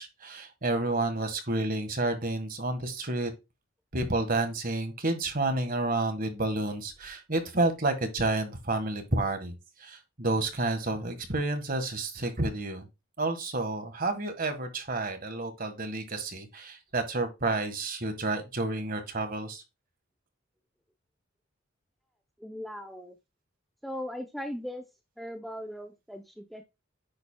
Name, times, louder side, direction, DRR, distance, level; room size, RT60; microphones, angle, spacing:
voice 1, 0.0-3.3 3.9-9.5 9.8-12.9 13.2-19.6, right 2 dB, 40° right, 1.5 m, -30 dB
voice 2, 22.4-23.2 23.8-24.8 25.2-26.6, equal, ahead, 0.5 m, -38 dB
9.7 x 7.2 x 2.2 m
head